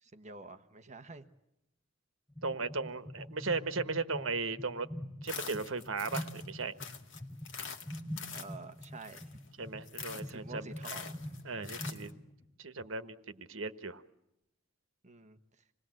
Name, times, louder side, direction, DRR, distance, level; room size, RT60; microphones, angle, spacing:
voice 1, 0.0-1.3 8.3-9.3 10.2-11.3 15.0-15.4, right 3 dB, 35° right, 9 dB, 1.3 m, -49 dB
sound 1, 2.3-12.5, equal, 20° left, 3.9 m, -44 dB
voice 2, 2.4-4.9 5.2-6.7 9.6-10.7 11.4-12.2 12.6-14.0, right 4 dB, 85° right, 11 dB, 1.3 m, -36 dB
sound 2, 5.2-6.5 6.8-9.5 9.8-10.3 10.8-12.1, left 6 dB, 65° left, 2.2 m, -44 dB
27.0 x 20.0 x 7.7 m, 0.87 s
head